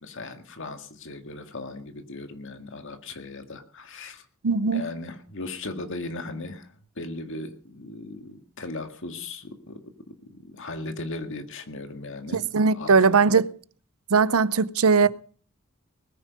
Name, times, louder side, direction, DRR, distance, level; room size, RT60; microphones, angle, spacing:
voice 1, 0.0-4.2 4.7-6.7 7.0-9.8 10.1-12.5 12.7-13.4, left 2 dB, 60° left, 2.0 m, -37 dB
voice 2, 4.4-4.8 12.3-13.5 14.1-15.1, right 5 dB, 80° right, 0.7 m, -19 dB
20.0 x 10.0 x 5.2 m
head